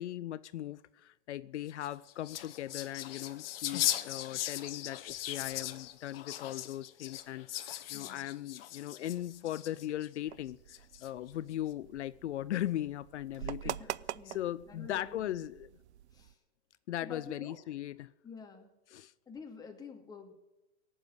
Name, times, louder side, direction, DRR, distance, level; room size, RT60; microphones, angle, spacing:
voice 1, 0.0-13.8 14.3-15.7 16.9-18.1 18.9-19.1, left 13 dB, 75° left, 0.6 m, -38 dB
sound 1, 1.7-10.1 10.7-11.3, left 13 dB, 55° left, 1.2 m, -38 dB
voice 2, 7.9-8.3 13.4-15.4 16.1-16.4 17.0-17.6 18.2-18.7 19.3-20.3, left 5 dB, 10° left, 2.3 m, -49 dB
sound 2, 10.3-16.3, right 12 dB, 70° right, 0.6 m, -45 dB
18.0 x 7.3 x 9.5 m
hypercardioid pair, 140°, 35 cm